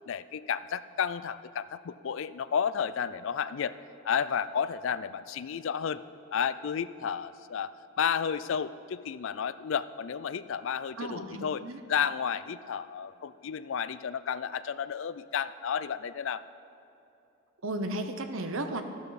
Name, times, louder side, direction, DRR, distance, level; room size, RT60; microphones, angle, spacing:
voice 1, 0.1-3.7 4.0-6.0 6.3-11.6 11.9-16.4, left 7 dB, 60° left, 15 dB, 0.4 m, -32 dB
voice 2, 11.0-11.8 17.6-18.8, right 2 dB, 65° right, 7 dB, 0.9 m, -34 dB
14.0 x 12.0 x 4.2 m, 2.8 s
head